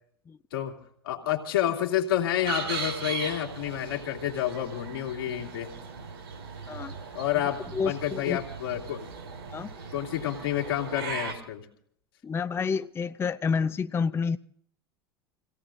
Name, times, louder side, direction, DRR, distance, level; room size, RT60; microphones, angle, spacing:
voice 1, 1.0-5.7 7.1-9.1 9.9-11.6, left 11 dB, 70° left, 2.6 m, -29 dB
sound 1, 2.4-11.3, right 5 dB, 75° right, 5.0 m, -38 dB
voice 2, 6.7-7.0 7.7-8.4 9.5-9.7 12.2-14.4, left 5 dB, 20° left, 0.5 m, -29 dB
28.0 x 17.0 x 2.6 m
figure-of-eight pair, 80°, 13 cm